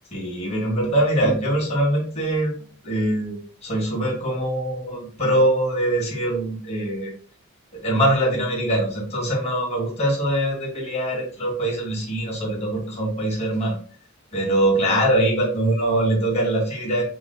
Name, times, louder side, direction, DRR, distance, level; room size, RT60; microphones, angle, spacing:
voice 1, 0.1-2.5 2.8-7.1 7.7-13.7 14.3-17.0, right 1 dB, 30° left, -2 dB, 1.8 m, -23 dB
5.8 x 3.8 x 2.2 m, 0.42 s
head